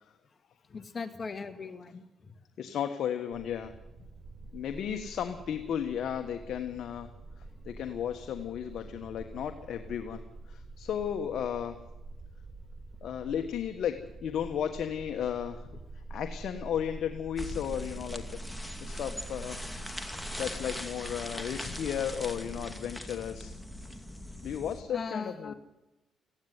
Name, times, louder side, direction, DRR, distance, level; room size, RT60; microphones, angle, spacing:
voice 1, 0.7-2.0 18.8-18.9 24.9-25.5, left 4 dB, 40° left, 8 dB, 1.7 m, -38 dB
voice 2, 2.6-3.7 4.5-7.1 7.6-11.8 13.0-15.7 16.1-18.2 18.5-19.6 20.4-23.5 24.4-25.5, left 9 dB, 70° left, 6 dB, 1.3 m, -34 dB
sound 1, 3.3-22.7, right 2 dB, 40° right, 4.2 m, -46 dB
sound 2, 17.4-24.8, left 1 dB, 5° left, 2.4 m, -41 dB
18.0 x 15.5 x 9.5 m, 0.99 s
cardioid pair, 90°, 0 cm